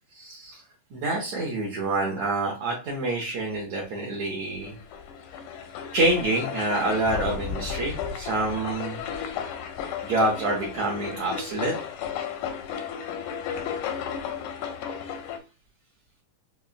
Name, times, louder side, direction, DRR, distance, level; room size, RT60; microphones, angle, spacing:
voice 1, 0.2-0.5 0.9-4.7 5.9-9.0 10.0-11.7, right 2 dB, 70° right, -3 dB, 1.7 m, -27 dB
sound 1, 4.6-15.4, left 8 dB, 80° left, 1.7 m, -34 dB
5.6 x 2.1 x 2.4 m, 0.32 s
omnidirectional pair, 3.8 m